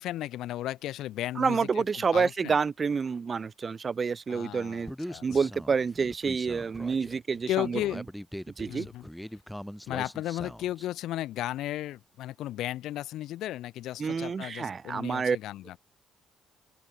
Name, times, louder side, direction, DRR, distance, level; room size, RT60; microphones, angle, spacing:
voice 1, 0.0-1.8 2.1-2.6 4.3-5.3 7.5-8.0 8.7-9.1 9.9-15.8, left 14 dB, 65° left, 0.4 m, -34 dB
voice 2, 1.4-4.9 5.2-8.0 8.6-8.9 14.0-15.4, right 5 dB, 40° right, 0.3 m, -28 dB
Human voice, 4.9-10.9, equal, ahead, 4.8 m, -42 dB
open air
hypercardioid pair, 50°, 0 cm